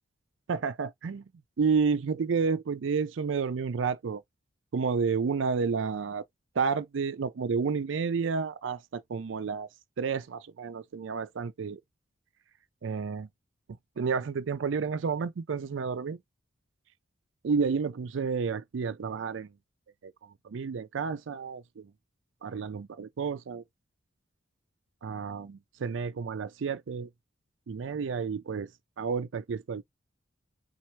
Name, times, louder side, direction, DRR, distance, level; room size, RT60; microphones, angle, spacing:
voice 1, 0.5-1.2 1.6-4.2 4.7-6.2 6.6-9.7 10.0-11.8 12.8-13.3 14.0-16.2 17.4-19.5 20.0-20.1 20.4-21.9 22.4-23.6 25.0-27.1 27.7-28.7 29.0-29.8, right 5 dB, 70° right, 0.4 m, -30 dB
4.3 x 2.5 x 4.5 m
head